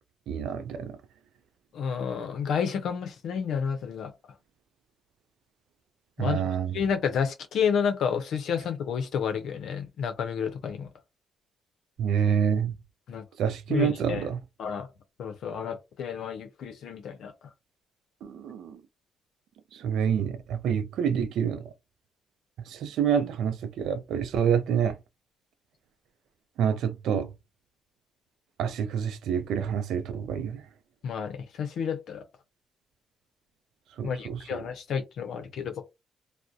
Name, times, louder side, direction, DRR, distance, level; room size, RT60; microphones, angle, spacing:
voice 1, 0.3-1.0 6.2-6.8 12.0-12.8 13.4-14.4 18.2-18.8 19.7-21.7 22.7-25.0 26.6-27.3 28.6-30.6 34.0-34.6, right 8 dB, 80° right, 0.4 m, -27 dB
voice 2, 1.7-4.3 6.2-6.4 6.7-10.9 13.1-13.2 13.7-14.2 14.6-14.9 15.2-17.3 31.0-32.2 34.0-35.8, left 7 dB, 70° left, 0.5 m, -30 dB
2.3 x 2.0 x 2.6 m
cardioid pair, 90°, 0 cm